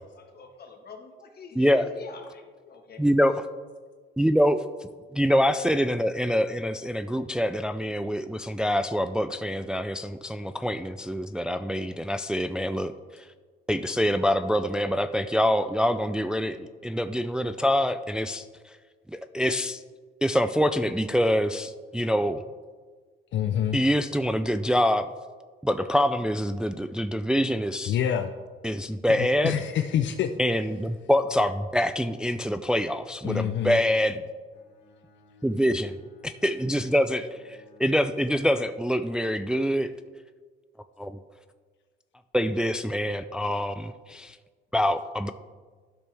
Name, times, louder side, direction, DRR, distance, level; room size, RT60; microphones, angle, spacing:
voice 1, 0.0-3.0, left 5 dB, 50° left, 3 dB, 1.6 m, -45 dB
voice 2, 1.6-1.9 3.0-3.3 4.2-4.6 5.1-13.3 13.7-18.7 19.1-19.8 20.2-22.4 23.7-25.1 25.6-28.0 28.6-29.6 30.4-34.2 35.4-36.0 36.2-39.9 41.0-41.2 42.3-44.4 44.7-45.3, equal, 5° right, 10 dB, 0.3 m, -25 dB
voice 3, 23.3-23.8 27.8-28.3 29.2-30.3 33.2-33.8, left 9 dB, 70° left, 7 dB, 0.6 m, -26 dB
Bowed string instrument, 34.5-38.8, left 2 dB, 90° left, 2.7 m, -57 dB
12.5 x 6.1 x 3.4 m, 1.5 s
cardioid pair, 90°, 20 cm